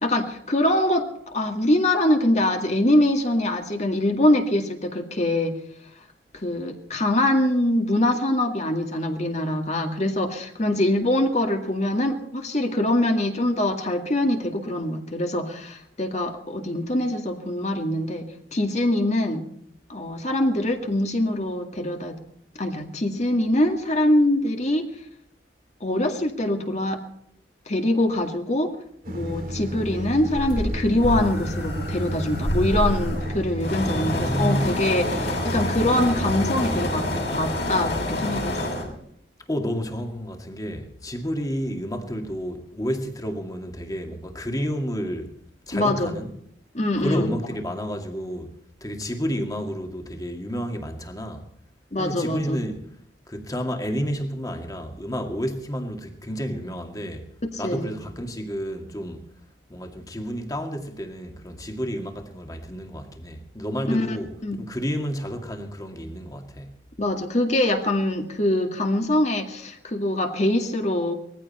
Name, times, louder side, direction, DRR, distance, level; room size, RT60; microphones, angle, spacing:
voice 1, 0.0-5.6 6.3-19.5 19.9-22.2 22.6-24.9 25.8-27.0 27.7-28.7 29.1-38.6 45.7-46.1 46.7-47.3 51.9-52.6 57.5-57.9 63.9-64.2 64.4-64.6 67.0-71.1, left 1 dB, 40° left, 2.1 m, -23 dB
sound 1, 29.0-37.2, equal, 50° right, 2.9 m, -32 dB
sound 2, 30.3-38.9, left 1 dB, 60° left, 6.0 m, -28 dB
voice 2, 33.9-34.8 39.5-45.3 45.7-46.3 47.0-48.5 48.8-51.5 52.0-52.8 53.3-57.3 57.6-59.2 59.7-66.8, equal, 20° left, 2.2 m, -30 dB
20.5 x 15.0 x 4.3 m
head